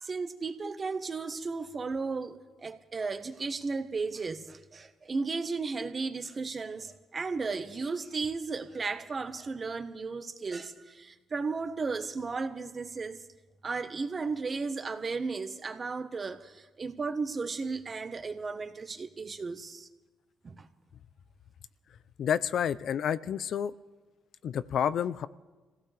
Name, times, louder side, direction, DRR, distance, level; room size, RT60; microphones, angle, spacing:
voice 1, 0.0-13.2 13.6-19.9 20.4-20.6, right 4 dB, 35° right, 1.2 m, -35 dB
voice 2, 22.2-23.7 24.4-25.3, left 8 dB, 65° left, 0.6 m, -29 dB
26.0 x 16.5 x 3.4 m
cardioid pair, 90°, 0 cm